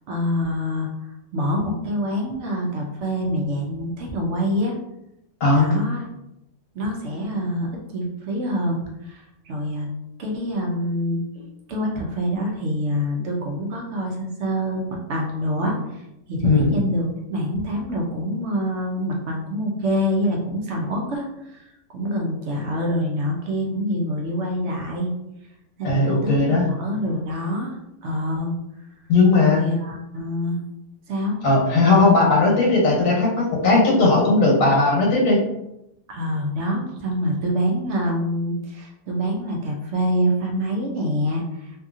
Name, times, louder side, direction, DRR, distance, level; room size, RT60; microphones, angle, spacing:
voice 1, 0.1-4.8 5.5-6.1 6.7-9.9 10.2-11.2 11.7-25.1 25.8-28.6 29.4-30.6 31.1-31.4 36.1-41.8, equal, 65° right, 0 dB, 0.8 m, -26 dB
voice 2, 25.8-26.6 29.1-29.6 31.4-35.4, left 3 dB, 70° left, -3 dB, 1.3 m, -17 dB
2.7 x 2.6 x 2.4 m, 0.86 s
omnidirectional pair, 1.4 m